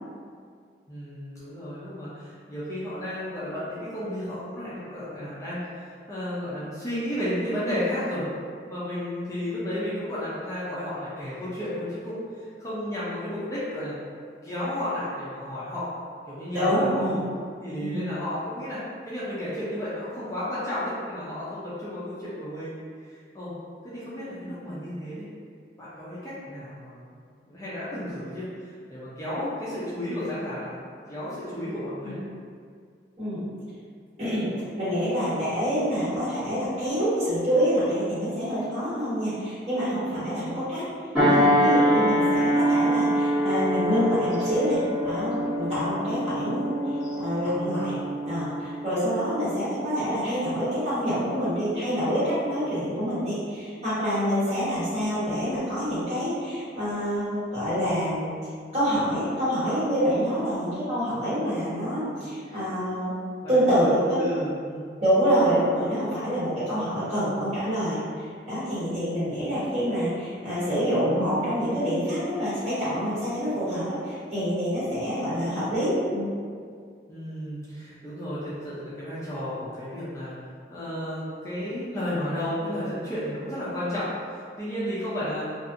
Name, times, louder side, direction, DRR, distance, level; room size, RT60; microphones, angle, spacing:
voice 1, 0.9-8.3 8.7-14.0 14.4-15.9 16.3-17.1 17.6-22.8 23.1-23.6 23.8-25.3 25.8-27.2 27.5-30.8 31.1-32.2 40.0-40.2 61.0-61.3 62.0-62.6 63.4-63.5 63.8-63.9 64.2-64.9 77.1-85.4, left 1 dB, 15° left, -10 dB, 0.5 m, -33 dB
voice 2, 16.5-17.2 17.8-18.0 32.0-32.2 33.2-33.4 34.2-34.5 34.8-40.8 41.2-48.0 48.2-58.3 58.7-63.1 63.5-64.2 65.0-68.0 68.5-76.3, equal, 40° right, -13 dB, 1.3 m, -26 dB
sound 1, 41.1-50.0 50.5-50.7, equal, 5° right, 1.3 m, -25 dB
2.6 x 2.4 x 2.5 m, 2.1 s
head